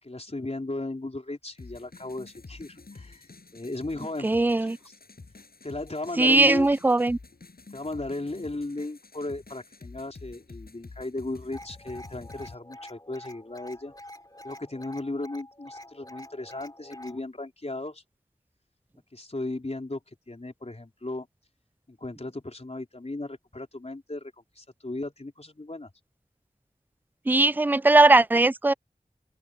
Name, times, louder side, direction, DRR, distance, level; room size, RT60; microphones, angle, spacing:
voice 1, 0.0-4.3 4.6-4.9 5.6-6.8 7.7-13.9 14.4-18.0 19.1-20.0 20.3-21.3 21.9-25.9, left 2 dB, 45° left, 4.1 m, -36 dB
sound 1, 1.6-12.5, left 3 dB, 90° left, 6.6 m, -48 dB
voice 2, 4.2-4.8 6.2-7.2 27.3-28.7, right 2 dB, 10° right, 0.4 m, -19 dB
sound 2, 11.5-17.2, left 1 dB, 25° left, 3.0 m, -46 dB
wide cardioid pair, 60°, 15 cm